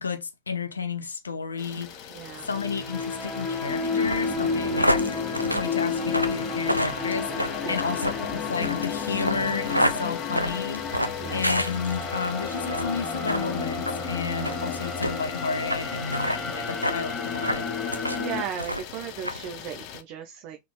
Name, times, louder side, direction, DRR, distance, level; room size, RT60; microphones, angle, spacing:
voice 1, 0.0-2.1 2.4-5.2 5.6-17.7, left 5 dB, 75° left, 0.7 m, -32 dB
Idling, 1.6-20.0, left 9 dB, 40° left, 0.7 m, -42 dB
voice 2, 2.1-2.5 4.4-5.1 7.6-8.1 11.2-11.4 16.1-16.7 18.2-20.6, right 9 dB, 45° right, 0.6 m, -37 dB
sound 1, 2.2-18.4, left 5 dB, 25° left, 1.2 m, -31 dB
sound 2, 4.0-12.3 12.6-12.9 13.3-13.4 13.8-14.0 14.4-14.6 15.0-15.1 15.7-15.8 16.1-16.4 16.8-17.0 17.4-18.2 18.6-18.9 19.2-19.4, equal, 90° right, 0.5 m, -28 dB
3.9 x 3.3 x 3.1 m
figure-of-eight pair, 90°, 0 cm